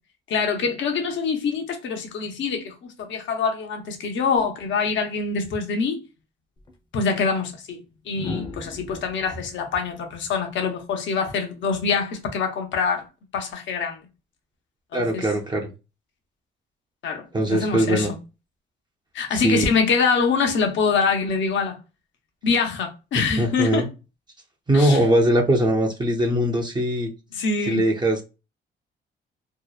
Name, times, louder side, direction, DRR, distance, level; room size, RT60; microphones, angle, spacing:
voice 1, 0.3-6.0 6.9-7.8 8.1-13.0 13.3-14.0 14.9-15.3 17.0-17.2 17.5-18.2 19.1-21.8 22.4-23.9 24.7-25.0 27.3-27.9, left 5 dB, 70° left, 0.7 m, -24 dB
sound 1, 6.6-6.7 8.1-11.2 12.7-13.0, left 2 dB, 20° left, 0.6 m, -39 dB
voice 2, 14.9-15.7 17.3-18.1 19.3-19.7 23.1-23.9 24.7-27.1 27.7-28.2, right 1 dB, 20° right, 0.5 m, -21 dB
2.8 x 2.0 x 2.3 m
cardioid pair, 90°, 20 cm